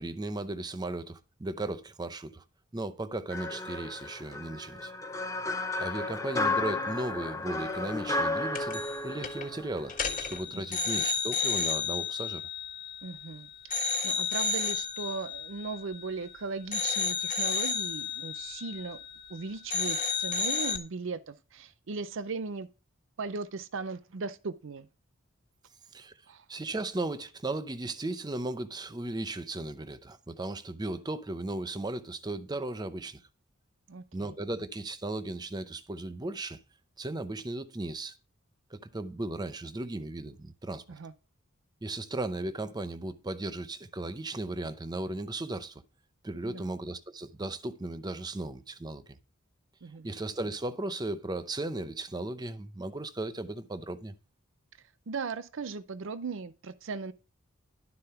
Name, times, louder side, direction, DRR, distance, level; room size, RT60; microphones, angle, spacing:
voice 1, 0.0-2.4 2.7-4.9 5.8-10.0 10.3-12.4 25.9-26.1 26.5-33.2 34.1-36.6 37.0-38.2 38.7-40.8 41.8-45.8 46.2-49.2 50.0-54.1, right 2 dB, 20° right, 0.6 m, -36 dB
sound 1, 3.3-10.4, left 2 dB, 15° left, 0.6 m, -33 dB
sound 2, 8.5-9.0 9.2-9.5 9.9-13.3 13.7-16.3 16.7-19.4 19.7-20.8, left 5 dB, 40° left, 1.5 m, -32 dB
voice 2, 13.0-13.5 14.0-19.0 19.3-22.7 23.2-24.9 26.3-26.4 33.9-34.3 40.9-41.1 46.4-46.7 49.8-50.1 55.1-57.1, right 4 dB, 65° right, 0.6 m, -38 dB
12.0 x 4.2 x 5.6 m
head